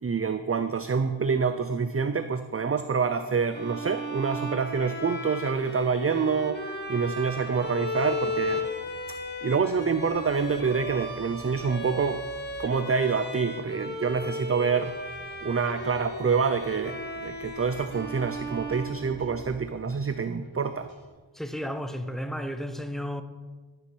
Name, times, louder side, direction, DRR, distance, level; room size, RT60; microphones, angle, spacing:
voice 1, 0.0-8.7 9.4-12.2 12.6-15.0 15.4-20.9, right 5 dB, 30° right, 0.5 m, -27 dB
Bowed string instrument, 3.5-19.6, left 1 dB, 20° left, 1.9 m, -35 dB
sound 1, 6.3-21.1, equal, 80° right, 2.5 m, -52 dB
voice 2, 21.3-23.2, equal, ahead, 0.9 m, -33 dB
13.0 x 6.9 x 6.2 m
wide cardioid pair, 45°, 46 cm